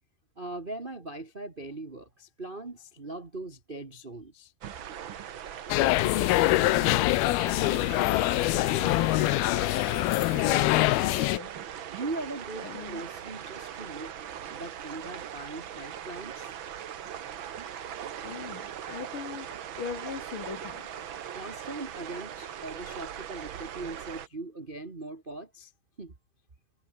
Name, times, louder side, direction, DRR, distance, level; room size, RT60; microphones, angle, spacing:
voice 1, 0.4-4.5 10.5-10.7 11.9-14.1 14.5-16.5 21.3-25.7 26.0-26.1, right 2 dB, 55° right, 0.5 m, -40 dB
sound 1, 4.6-24.3, right 9 dB, 85° right, 1.1 m, -40 dB
voice 2, 5.4-9.6 10.3-11.6 12.6-13.0 17.7-21.4, left 7 dB, 55° left, 1.5 m, -41 dB
sound 2, 5.7-11.4, left 20 dB, 85° left, 2.6 m, -24 dB
omnidirectional pair, 4.3 m